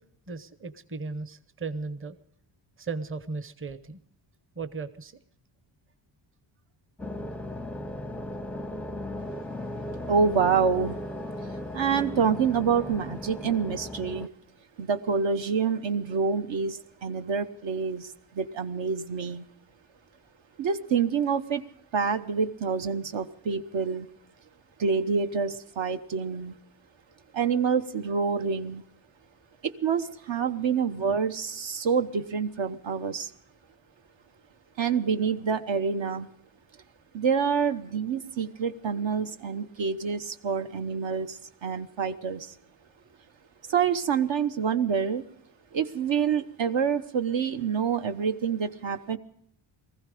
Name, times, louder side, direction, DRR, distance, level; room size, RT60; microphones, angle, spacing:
voice 1, 0.3-2.2 2.8-4.0 4.5-5.2, right 4 dB, 25° right, 12 dB, 0.9 m, -36 dB
sound 1, 7.0-14.3, left 1 dB, 5° left, 0.5 m, -36 dB
voice 2, 10.1-11.0 11.7-14.3 14.8-19.5 20.6-21.6 21.9-24.1 24.8-26.5 27.3-28.8 29.6-33.3 34.8-36.3 37.1-42.5 43.7-45.2 45.7-49.2, right 6 dB, 65° right, 8 dB, 1.1 m, -27 dB
19.5 x 15.0 x 5.0 m, 0.67 s
cardioid pair, 80°, 49 cm